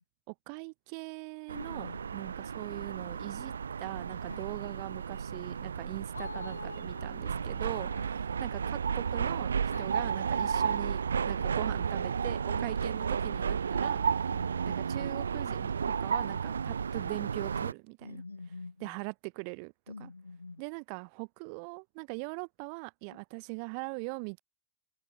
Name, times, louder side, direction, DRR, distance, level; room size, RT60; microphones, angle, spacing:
voice 1, 0.3-3.5 3.8-7.9 8.4-11.0 11.2-14.0 14.7-18.2 18.8-19.7 20.0-20.1 20.6-24.4, right 40 dB or more, 45° right, 2.3 m, -41 dB
voice 2, 1.5-2.0 4.3-4.5 6.1-8.1 9.7-10.0 11.4-11.5 12.5-12.6 14.3-14.5 18.0-18.9 19.9-20.6, left 3 dB, 80° left, 0.6 m, -45 dB
sound 1, 1.5-17.7, right 6 dB, 70° right, 0.6 m, -33 dB
figure-of-eight pair, 90°, 0 cm